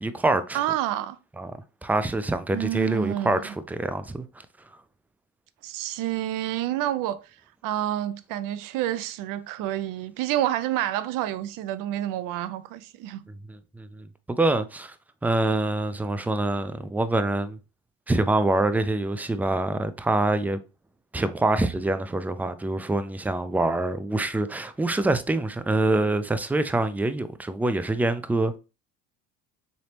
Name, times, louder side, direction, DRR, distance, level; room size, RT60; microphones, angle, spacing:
voice 1, 0.0-0.6 1.4-1.5 1.8-4.3 13.5-15.0 15.2-17.6 18.1-20.6 21.1-28.6, right 2 dB, 5° right, 0.3 m, -25 dB
voice 2, 0.5-1.2 2.5-3.5 5.6-7.2 7.6-13.2, right 13 dB, 75° right, 0.5 m, -28 dB
4.0 x 3.3 x 2.8 m
supercardioid pair, 90°, 33 cm